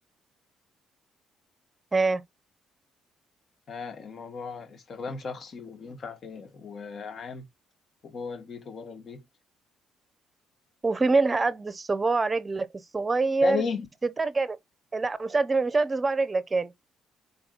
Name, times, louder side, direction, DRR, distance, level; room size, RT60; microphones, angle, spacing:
voice 1, 1.9-2.2 10.8-12.7 12.9-13.6 14.0-14.6 14.9-16.7, right 3 dB, 25° right, 0.7 m, -25 dB
voice 2, 3.7-7.4 8.0-9.2 13.4-13.9, left 5 dB, 50° left, 1.4 m, -35 dB
4.0 x 3.5 x 2.4 m
supercardioid pair, 75°, 0 cm